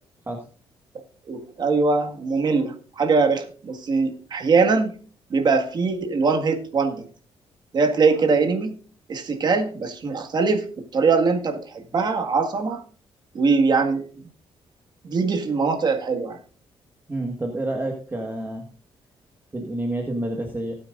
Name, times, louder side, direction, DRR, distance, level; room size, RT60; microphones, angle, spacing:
voice 1, 1.3-5.0 5.3-7.1 7.7-8.8 9.1-12.8 13.3-14.1 15.0-16.4, right 4 dB, 45° right, 4 dB, 1.8 m, -22 dB
voice 2, 17.1-18.7 19.5-20.8, right 1 dB, 20° right, 1 dB, 1.6 m, -29 dB
18.5 x 8.7 x 2.5 m, 0.40 s
cardioid pair, 125°, 10 cm